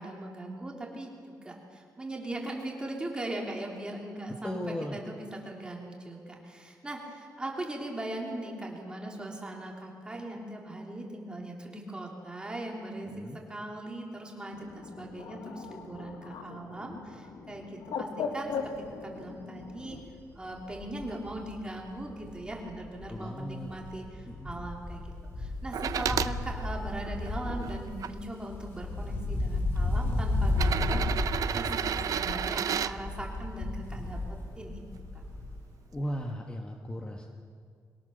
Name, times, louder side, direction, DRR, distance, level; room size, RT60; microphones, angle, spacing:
voice 1, 0.0-4.6 4.9-13.1 13.5-20.0 20.3-34.2 34.6-34.8, right 1 dB, 15° right, -1 dB, 3.3 m, -39 dB
voice 2, 4.4-5.0 13.0-13.4 23.1-23.7 24.3-24.7 35.9-37.3, equal, 15° left, 2 dB, 1.3 m, -37 dB
Bird, 14.5-20.0, left 5 dB, 75° left, 1.5 m, -39 dB
Wind, 18.6-18.9 19.3-19.4 19.7-23.2 23.5-35.7 35.9-36.0, left 2 dB, 35° left, 4.9 m, -33 dB
sound 1, 25.7-26.3 27.1-28.1 29.1-29.2 30.5-32.9 34.8-34.9, right 9 dB, 60° right, 0.5 m, -31 dB
23.0 x 17.5 x 6.7 m, 2.2 s
cardioid pair, 140°, 7 cm